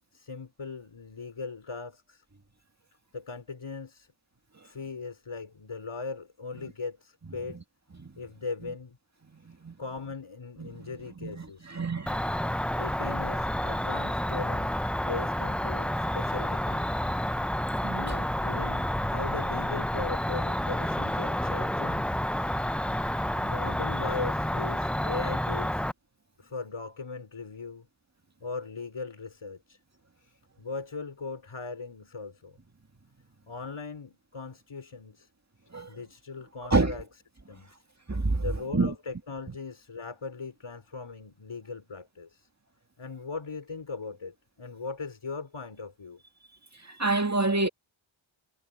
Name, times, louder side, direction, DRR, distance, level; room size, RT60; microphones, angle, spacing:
voice 1, 0.1-2.2 3.1-4.1 4.6-7.6 8.2-9.0 9.8-11.8 12.7-14.7 15.0-17.0 17.9-22.1 23.3-25.8 26.4-27.9 28.4-29.8 30.2-32.6 33.5-35.3 35.9-37.0 37.5-37.8 38.4-42.5 43.0-46.2, left 4 dB, 75° left, 4.8 m, -39 dB
voice 2, 10.6-10.9 11.2-12.3 17.8-18.0 35.7-35.9 36.7-36.9 38.1-38.4 38.7-38.9 46.8-47.7, right 3 dB, 35° right, 2.1 m, -28 dB
Cricket, 12.1-25.9, left 1 dB, 5° left, 0.4 m, -29 dB
wide cardioid pair, 70°, 49 cm